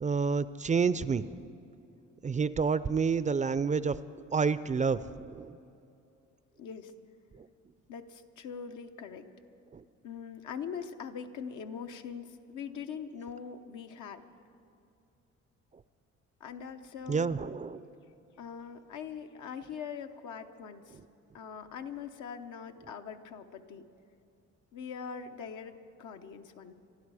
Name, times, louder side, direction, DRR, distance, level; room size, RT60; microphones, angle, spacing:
voice 1, 0.0-1.4 2.2-4.0 4.3-5.6 9.7-9.8 17.1-17.9, right 5 dB, 25° right, 15 dB, 0.4 m, -29 dB
voice 2, 6.6-6.9 7.9-9.3 10.0-14.2 16.4-17.4 18.4-21.0 21.3-23.9 24.7-26.7, left 7 dB, 80° left, 6 dB, 1.0 m, -42 dB
25.5 x 12.0 x 4.9 m, 2.7 s
cardioid pair, 90°, 30 cm